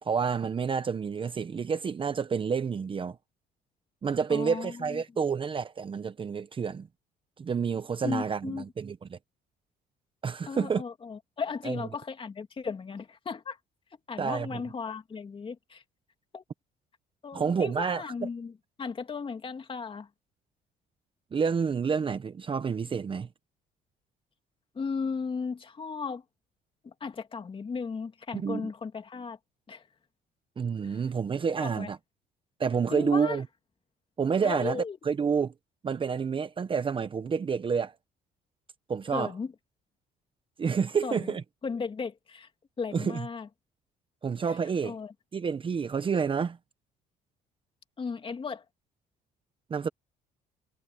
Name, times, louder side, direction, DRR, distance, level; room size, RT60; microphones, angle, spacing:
voice 1, 0.0-3.2 4.0-6.9 7.4-9.2 10.2-10.8 11.6-11.8 14.2-14.6 17.3-18.0 21.3-23.3 28.3-28.7 30.6-32.0 32.6-33.4 34.2-35.5 35.8-37.9 38.9-39.3 40.6-41.4 42.9-43.2 44.2-44.9 45.3-46.6 49.7-49.9, right 6 dB, 30° right, 0.9 m, -29 dB
voice 2, 4.3-5.0 8.0-8.6 10.5-13.6 14.1-15.8 16.3-16.4 17.2-18.5 18.8-20.1 24.7-26.2 26.8-29.4 29.7-29.8 30.8-31.0 31.4-31.9 32.9-33.4 34.4-35.0 39.1-39.5 41.0-41.3 41.6-42.5 42.8-43.5 44.5-44.6 44.8-45.1 48.0-48.6, left 5 dB, 30° left, 2.9 m, -36 dB
cardioid pair, 110°, 17 cm